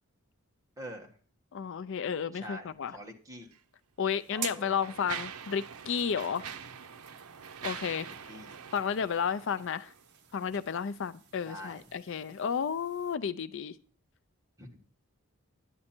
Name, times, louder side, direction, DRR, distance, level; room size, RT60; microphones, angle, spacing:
voice 1, 0.8-1.1 2.3-3.5 4.3-5.1 8.1-8.6 11.4-11.8 14.6-14.7, equal, 15° right, 1.5 m, -45 dB
voice 2, 1.5-3.0 4.0-6.5 7.6-8.1 8.7-9.9 10.3-13.7, left 7 dB, 55° left, 0.4 m, -32 dB
Mechanisms, 3.4-3.6 4.3-10.1, right 7 dB, 85° right, 0.7 m, -44 dB
sound 1, 4.2-13.2, right 8 dB, 50° right, 0.9 m, -49 dB
11.0 x 9.6 x 4.4 m
head